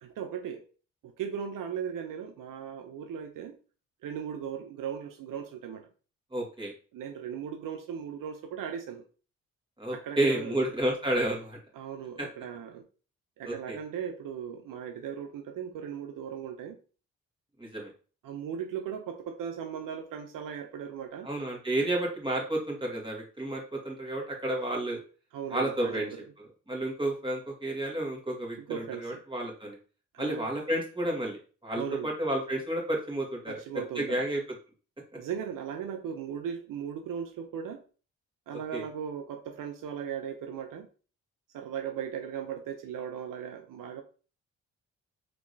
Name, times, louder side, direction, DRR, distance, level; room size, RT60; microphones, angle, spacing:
voice 1, 0.0-0.6 1.0-3.6 4.0-5.9 6.9-9.0 9.9-10.7 11.7-12.9 13.4-16.8 18.2-21.3 25.3-26.3 28.6-29.2 30.1-30.5 31.7-32.1 33.5-34.3 35.2-37.8 38.5-40.9 41.5-44.0, right 8 dB, 70° right, 5 dB, 0.6 m, -37 dB
voice 2, 6.3-6.7 9.8-11.6 12.2-12.3 13.4-13.8 17.6-17.9 21.2-25.0 25.5-26.1 26.4-29.8 30.2-33.6 33.9-34.4 38.5-38.8, right 1 dB, 15° right, -2 dB, 1.7 m, -31 dB
3.4 x 3.0 x 2.7 m, 0.37 s
supercardioid pair, 50°, 34 cm